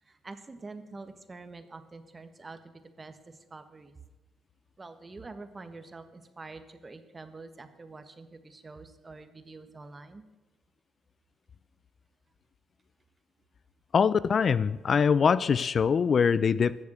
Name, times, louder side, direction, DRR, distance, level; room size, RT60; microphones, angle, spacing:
voice 1, 0.0-4.0 4.8-10.2, right 3 dB, 25° right, 9 dB, 1.4 m, -46 dB
voice 2, 13.9-16.8, left 6 dB, 45° left, 17 dB, 0.4 m, -23 dB
14.5 x 7.1 x 9.0 m, 1.1 s
cardioid pair, 90°, 0 cm